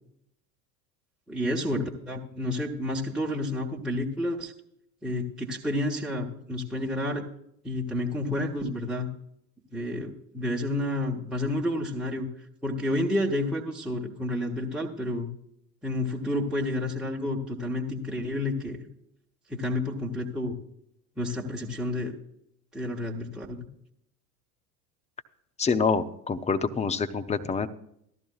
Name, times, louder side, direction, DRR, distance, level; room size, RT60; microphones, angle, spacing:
voice 1, 1.3-4.5 5.0-7.3 7.6-9.1 9.7-12.3 12.6-15.3 15.8-18.8 19.5-20.6 21.2-22.1 22.7-23.6, left 1 dB, ahead, -3 dB, 1.2 m, -30 dB
voice 2, 25.6-27.7, left 5 dB, 15° left, 10 dB, 0.6 m, -26 dB
15.0 x 12.5 x 2.4 m, 0.74 s
figure-of-eight pair, 70°, 48 cm